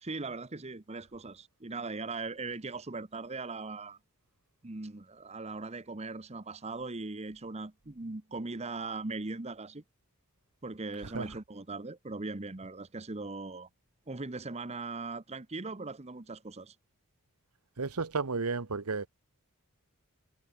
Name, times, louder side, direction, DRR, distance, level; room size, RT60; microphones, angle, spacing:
voice 1, 0.0-4.0 4.6-9.8 10.6-13.7 14.1-16.7, right 3 dB, 30° right, 0.9 m, -39 dB
voice 2, 17.8-19.1, right 4 dB, 90° right, 1.1 m, -32 dB
head